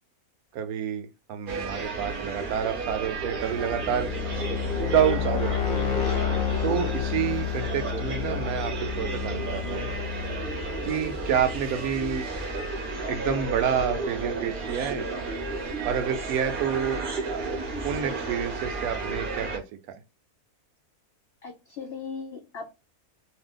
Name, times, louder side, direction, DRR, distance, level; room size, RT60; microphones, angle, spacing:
voice 1, 0.5-4.1 4.8-5.8 6.6-9.9 10.8-12.3 13.1-15.1 15.8-17.0 17.8-19.6, right 8 dB, 75° right, 1.0 m, -28 dB
sound 1, 1.5-19.6, right 3 dB, 50° right, 0.7 m, -33 dB
sound 2, 3.2-12.0, left 9 dB, 60° left, 0.9 m, -31 dB
voice 2, 21.4-22.7, left 5 dB, 80° left, 0.5 m, -38 dB
2.7 x 2.2 x 3.6 m
omnidirectional pair, 1.6 m